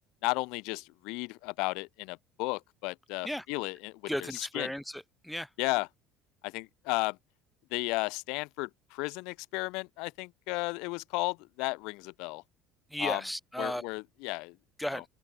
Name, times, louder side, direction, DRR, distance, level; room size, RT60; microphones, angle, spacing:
voice 1, 0.2-4.7 5.6-5.9 6.4-7.2 7.7-12.4 13.0-13.2 13.6-14.5 14.9-15.0, left 27 dB, 75° left, 3.8 m, -34 dB
voice 2, 4.1-5.5 12.9-13.8 14.8-15.0, equal, ahead, 4.6 m, -35 dB
cardioid pair, 115°, 0 cm